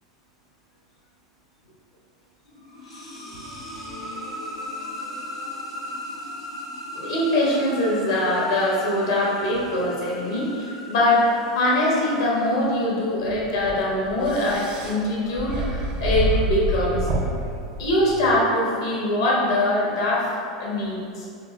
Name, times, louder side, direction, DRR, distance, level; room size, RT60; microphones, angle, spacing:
sound 1, 2.4-13.2, left 1 dB, 85° left, 1.4 m, -37 dB
voice 1, 6.9-17.1 17.8-20.3 20.6-21.3, left 1 dB, 60° left, -4 dB, 1.2 m, -23 dB
sound 2, 13.2-18.4, right 1 dB, 40° right, 0.5 m, -28 dB
5.1 x 3.4 x 2.8 m, 2.3 s
figure-of-eight pair, 85°, 3 cm